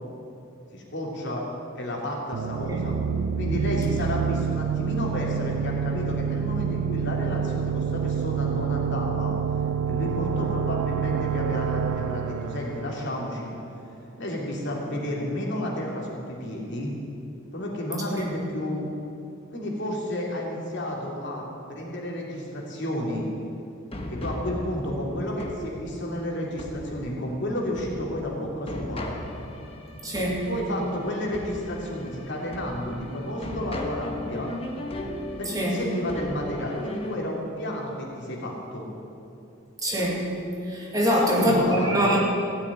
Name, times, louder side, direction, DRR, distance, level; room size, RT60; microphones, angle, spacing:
voice 1, 0.7-1.4 1.7-3.0 3.3-9.4 9.8-13.5 14.2-16.9 17.5-18.9 19.5-23.3 24.1-29.1 30.4-34.5 35.4-38.9 41.1-42.1, left 1 dB, 60° left, -2 dB, 2.9 m, -31 dB
sound 1, 2.3-13.9, right 7 dB, 75° right, 0.3 m, -28 dB
sound 2, 23.9-37.2, left 1 dB, 30° left, 1.3 m, -37 dB
voice 2, 30.0-30.4 35.5-35.8 39.8-40.3 40.6-42.2, equal, 20° right, -3 dB, 2.4 m, -24 dB
16.5 x 7.1 x 9.6 m, 2.7 s
head